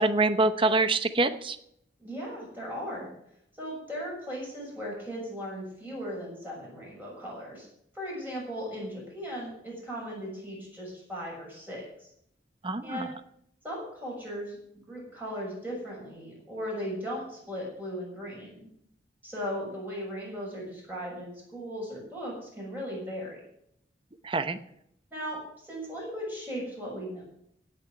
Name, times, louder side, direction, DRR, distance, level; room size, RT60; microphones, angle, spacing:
voice 1, 0.0-1.6 12.6-13.0 24.3-24.6, right 3 dB, 30° right, 11 dB, 0.8 m, -25 dB
voice 2, 2.0-3.1 3.6-7.7 7.9-12.1 12.8-13.1 13.6-18.7 19.2-23.4 25.1-27.2, equal, 10° right, -5 dB, 6.8 m, -37 dB
16.5 x 6.1 x 9.1 m, 0.74 s
head